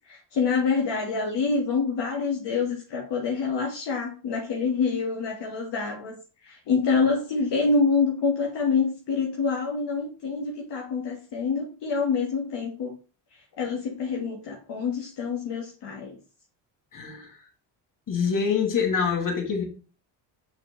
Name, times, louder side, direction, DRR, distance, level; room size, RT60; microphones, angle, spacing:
voice 1, 0.1-6.2 6.4-13.0 13.6-16.2, left 4 dB, 60° left, 1.8 m, -26 dB
voice 2, 16.9-17.3 18.1-19.6, left 6 dB, 40° left, 2.3 m, -25 dB
6.1 x 5.1 x 3.2 m
supercardioid pair, 80°, 47 cm